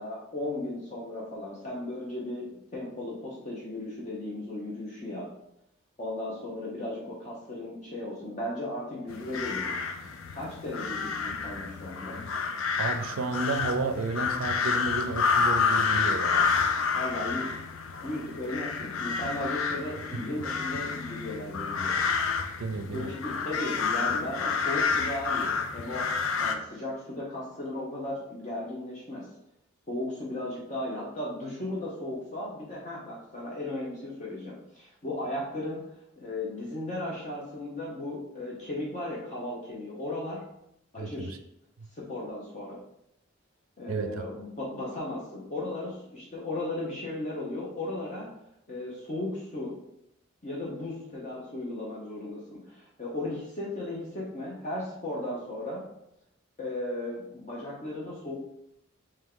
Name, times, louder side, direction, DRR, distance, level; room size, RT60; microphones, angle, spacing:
voice 1, 0.0-5.3 6.0-12.2 16.9-17.6 18.0-22.0 22.9-29.3 29.9-35.9 36.2-40.4 40.9-41.3 41.9-42.8 43.8-48.3 48.7-49.8 50.4-55.8 56.6-58.3, left 1 dB, 35° left, -5 dB, 0.7 m, -36 dB
sound 1, 9.1-26.6, left 5 dB, 75° left, 0.4 m, -29 dB
voice 2, 12.8-16.5 22.6-23.1 41.0-41.4 43.9-44.1, right 3 dB, 80° right, 8 dB, 0.4 m, -32 dB
3.5 x 3.2 x 3.7 m, 0.80 s
head